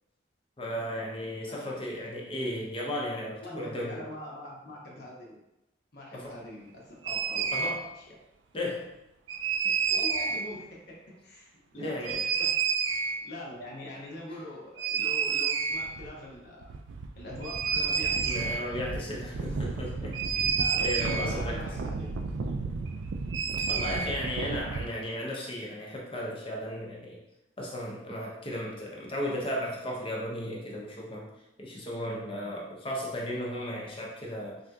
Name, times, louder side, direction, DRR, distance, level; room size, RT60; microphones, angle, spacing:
voice 1, 0.6-4.0 6.1-6.3 7.5-7.9 8.5-8.9 9.6-9.7 11.7-12.2 18.2-20.6 20.8-21.6 23.7-27.2 27.6-31.3 31.6-34.6, equal, 30° left, -3 dB, 0.6 m, -35 dB
voice 2, 1.5-2.0 3.4-5.4 5.9-7.6 8.0-8.1 9.9-12.1 12.3-12.5 13.2-16.7 17.2-18.8 20.6-22.3 23.9-24.0, left 1 dB, 60° left, -3 dB, 0.8 m, -43 dB
sound 1, 7.0-7.7 9.3-10.4 12.0-13.2 14.8-16.1 16.3-16.4 16.6-24.9, right 6 dB, 85° right, 0.3 m, -30 dB
3.6 x 2.7 x 2.3 m, 0.89 s
head